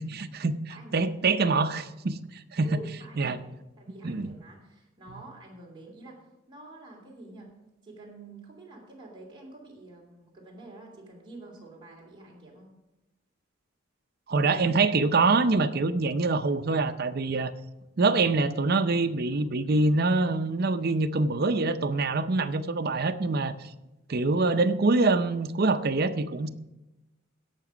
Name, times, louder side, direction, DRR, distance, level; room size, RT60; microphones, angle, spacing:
voice 1, 0.0-2.8 3.2-3.4 4.0-4.3 14.3-17.5 18.0-23.7 24.1-26.5, right 3 dB, 50° right, 9 dB, 0.5 m, -25 dB
voice 2, 0.7-1.2 2.6-6.2 6.5-7.5 7.8-12.7 26.4-26.5, right 2 dB, 25° right, -3 dB, 2.8 m, -47 dB
16.5 x 5.9 x 4.9 m, 0.99 s
head